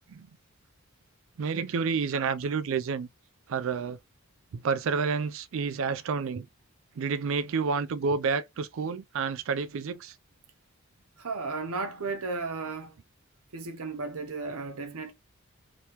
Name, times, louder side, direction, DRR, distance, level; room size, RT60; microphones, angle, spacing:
voice 1, 1.4-3.1 3.5-4.0 4.5-6.5 7.0-10.1, right 5 dB, 65° right, 0.3 m, -29 dB
voice 2, 11.2-13.0 13.5-15.1, right 4 dB, 80° right, 0.7 m, -34 dB
2.9 x 2.9 x 3.3 m
head